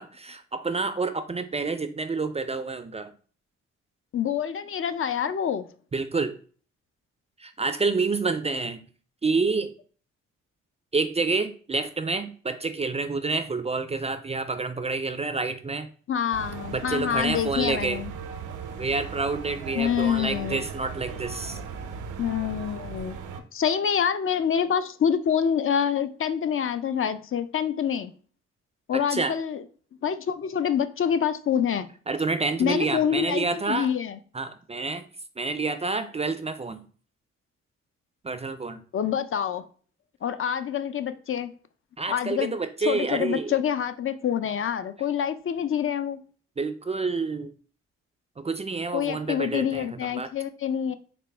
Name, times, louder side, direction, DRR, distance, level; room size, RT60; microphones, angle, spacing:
voice 1, 0.0-3.1 5.9-6.4 7.4-8.8 9.2-9.7 10.9-15.9 16.7-18.0 18.8-21.6 28.9-29.4 32.1-33.9 34.3-35.0 35.4-36.8 38.2-38.8 42.0-43.5 46.6-47.5 48.4-50.3, right 3 dB, 20° right, 0.3 m, -28 dB
voice 2, 4.1-5.7 16.1-18.1 19.8-20.6 22.2-23.2 23.5-28.1 28.9-29.6 30.0-31.9 32.6-34.2 38.9-39.7 40.2-41.5 42.1-42.6 42.9-46.2 48.9-50.9, left 8 dB, 45° left, 0.4 m, -26 dB
sound 1, 16.3-23.4, right 6 dB, 90° right, 0.5 m, -37 dB
4.0 x 2.0 x 3.3 m
supercardioid pair, 55°, 30 cm